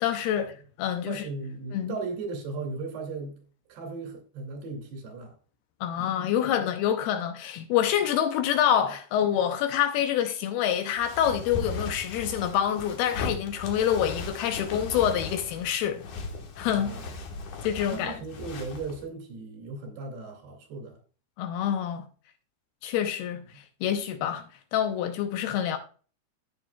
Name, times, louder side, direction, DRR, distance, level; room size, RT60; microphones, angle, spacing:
voice 1, 0.0-1.2 1.7-2.0 5.8-16.0 16.6-16.9 17.6-18.2 21.4-22.1 22.8-25.8, left 10 dB, 80° left, 2.6 m, -27 dB
voice 2, 1.1-3.4 3.7-5.3 16.8-17.0 17.9-21.0, right 3 dB, 85° right, 4.5 m, -37 dB
sound 1, 11.0-19.0, left 3 dB, 60° left, 2.5 m, -38 dB
15.5 x 6.1 x 2.3 m
omnidirectional pair, 4.7 m